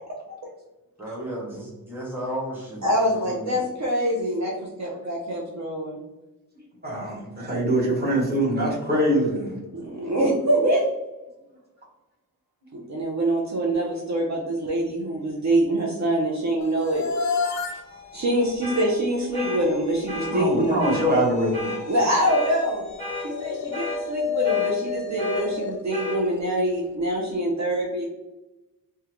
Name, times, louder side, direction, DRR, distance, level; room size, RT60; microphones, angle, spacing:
voice 1, 1.0-2.9 3.2-3.6 4.9-5.0, right 1 dB, 5° right, -5 dB, 0.8 m, -34 dB
voice 2, 2.8-4.5 4.8-6.0 9.7-10.8 12.7-17.0 18.1-20.8 21.9-22.9 23.2-28.0, right 1 dB, 55° right, -3 dB, 0.6 m, -24 dB
voice 3, 6.8-9.6 20.3-21.8, right 1 dB, 30° right, -5 dB, 1.1 m, -23 dB
sound 1, 16.6-26.8, left 6 dB, 55° left, 0.4 m, -32 dB
sound 2, 18.6-18.9 19.3-19.6 20.1-20.3 20.8-21.1 21.5-21.8 22.3-22.5 23.0-23.3 23.7-24.0 24.4-24.7 25.2-25.4 25.9-26.2, left 2 dB, 70° right, 1.2 m, -32 dB
3.6 x 2.2 x 2.9 m, 1.0 s
wide cardioid pair, 170°, 34 cm